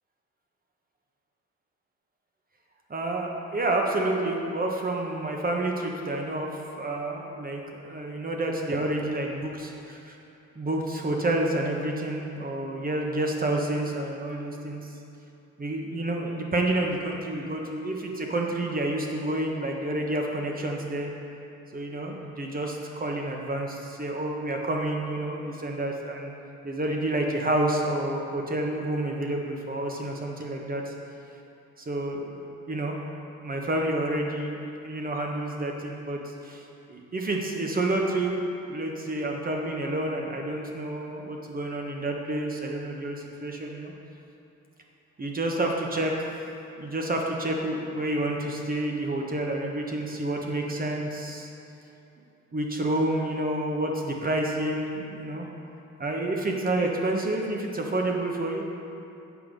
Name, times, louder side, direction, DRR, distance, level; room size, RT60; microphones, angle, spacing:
voice 1, 2.9-6.5 6.8-10.2 10.5-14.9 15.6-21.1 21.7-26.3 26.6-30.9 31.9-32.3 32.7-32.9 33.4-34.6 34.8-36.2 36.4-36.6 36.9-38.3 38.7-43.9 45.2-46.3 46.8-51.5 52.5-55.5 56.0-58.6, right 1 dB, 30° right, 0 dB, 1.3 m, -29 dB
8.3 x 5.7 x 5.3 m, 2.8 s
cardioid pair, 90°, 30 cm